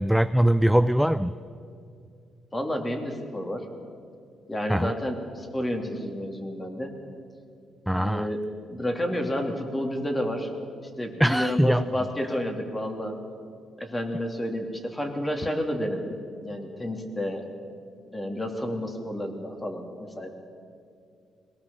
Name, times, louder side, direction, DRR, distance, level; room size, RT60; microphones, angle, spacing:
voice 1, 0.0-1.4 4.7-4.9 7.9-8.3 11.2-11.8, equal, ahead, 12 dB, 0.5 m, -22 dB
voice 2, 2.5-3.7 4.5-7.0 8.0-8.4 8.7-10.5 11.0-13.2 13.8-16.2 16.4-17.4 18.1-20.3, equal, 15° left, 3 dB, 3.0 m, -30 dB
21.5 x 18.5 x 7.2 m, 2.4 s
cardioid pair, 90°, 0 cm